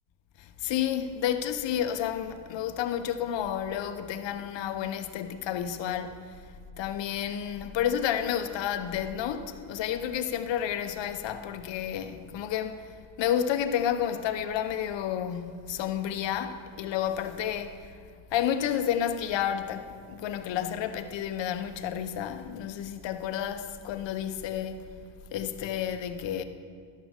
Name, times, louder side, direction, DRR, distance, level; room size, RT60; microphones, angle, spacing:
voice 1, 0.4-6.4 6.8-12.9 13.2-17.9 18.3-24.8 25.3-26.4, left 9 dB, 65° left, 0.9 m, -31 dB
12.5 x 10.5 x 3.7 m
supercardioid pair, 75°, 47 cm